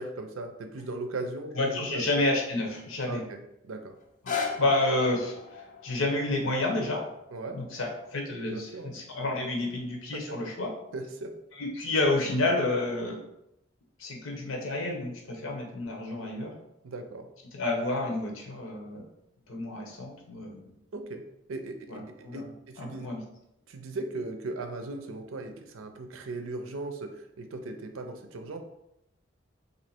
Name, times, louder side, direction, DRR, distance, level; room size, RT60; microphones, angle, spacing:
voice 1, 0.0-2.0 3.1-3.4 3.6-3.9 7.3-7.6 8.5-8.9 10.1-10.4 10.9-11.3 16.8-17.3 20.9-21.2 21.5-23.1 23.7-28.6, right 2 dB, 85° right, 6 dB, 0.5 m, -38 dB
voice 2, 1.5-3.2 4.2-5.4 5.8-7.0 7.5-10.7 11.6-13.2 14.0-16.5 17.5-19.1 19.5-20.7 21.9-22.5 22.8-23.2, left 2 dB, 85° left, 1 dB, 0.9 m, -29 dB
sound 1, 4.0-10.1 10.7-10.8, left 5 dB, 40° left, 0.4 m, -40 dB
3.1 x 2.7 x 4.3 m, 0.83 s
head